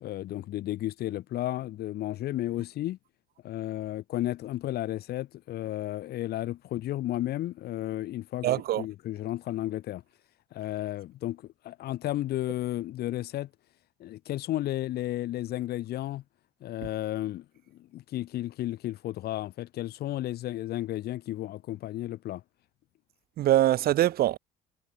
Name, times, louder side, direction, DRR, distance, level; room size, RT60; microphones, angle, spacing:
voice 1, 0.0-3.0 3.4-8.5 8.8-10.0 10.5-13.5 14.0-16.2 16.6-17.4 17.7-22.4, left 14 dB, 70° left, 1.7 m, -33 dB
voice 2, 8.4-8.8 23.4-24.4, right 13 dB, 65° right, 1.2 m, -23 dB
cardioid pair, 110°, 17 cm